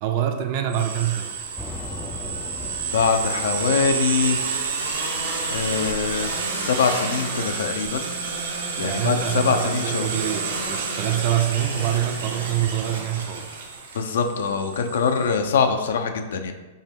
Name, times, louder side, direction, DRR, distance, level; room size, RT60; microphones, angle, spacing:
voice 1, 0.0-1.4 8.8-13.7, right 11 dB, 50° right, 6 dB, 0.4 m, -25 dB
sound 1, 0.7-15.4, right 4 dB, 80° right, 0.7 m, -29 dB
sound 2, 1.6-5.3, left 1 dB, 10° left, 0.5 m, -39 dB
voice 2, 2.9-4.4 5.5-8.1 8.8-10.1 13.9-16.5, left 6 dB, 75° left, 6 dB, 0.4 m, -23 dB
5.2 x 2.1 x 3.6 m, 1.2 s
hypercardioid pair, 110°, 0 cm